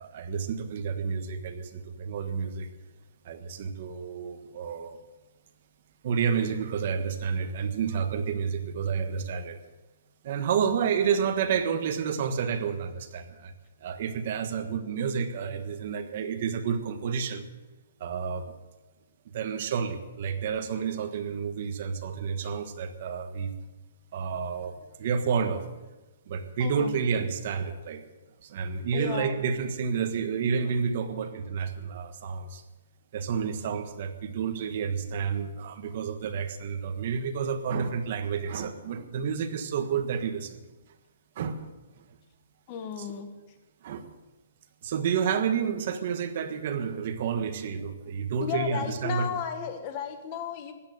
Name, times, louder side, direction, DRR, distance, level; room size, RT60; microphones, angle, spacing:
voice 1, 0.0-2.7 3.2-5.0 6.0-9.6 10.2-13.5 13.8-17.4 18.0-18.4 19.3-23.5 24.1-25.6 26.3-28.0 28.4-32.6 33.1-40.6 41.4-41.7 43.0-43.1 43.8-44.1 44.8-49.4, right 6 dB, 45° right, 7 dB, 1.4 m, -30 dB
voice 2, 26.6-26.9 28.9-29.4 42.7-43.3 48.4-50.7, left 7 dB, 30° left, 7 dB, 1.5 m, -34 dB
16.0 x 11.0 x 6.6 m, 1.1 s
hypercardioid pair, 170°, 0 cm